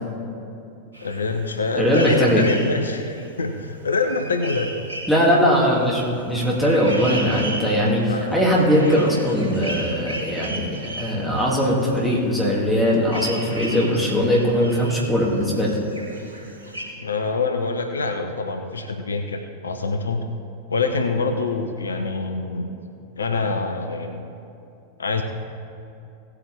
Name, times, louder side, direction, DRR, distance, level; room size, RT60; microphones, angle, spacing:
sound 1, 0.9-12.1 12.5-12.6 12.8-16.8, right 1 dB, 75° right, 1.8 m, -36 dB
voice 1, 1.0-4.8 8.1-8.5 17.0-20.3 20.7-22.7 23.2-24.3 25.0-25.2, left 3 dB, 70° left, 6 dB, 0.7 m, -25 dB
voice 2, 1.8-2.4 5.1-15.8, equal, ahead, -6 dB, 2.7 m, -20 dB
17.0 x 8.2 x 3.6 m, 2.7 s
figure-of-eight pair, 90°, 0 cm